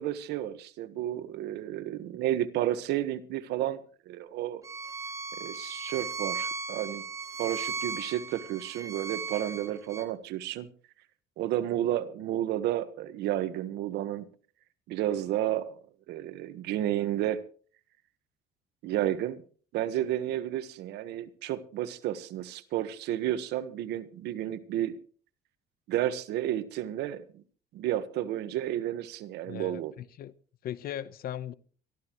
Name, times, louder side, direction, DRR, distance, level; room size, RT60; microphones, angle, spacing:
voice 1, 0.0-3.8 4.1-4.6 5.4-7.0 7.4-10.7 11.4-14.3 14.9-15.8 16.1-17.4 18.8-19.4 19.7-25.0 25.9-27.4 27.7-29.9, right 12 dB, 85° right, 1.4 m, -31 dB
Bowed string instrument, 4.6-10.1, right 5 dB, 20° right, 2.6 m, -37 dB
voice 2, 29.4-30.3 30.6-31.5, left 11 dB, 60° left, 1.0 m, -38 dB
23.0 x 14.0 x 3.1 m
cardioid pair, 110°, 17 cm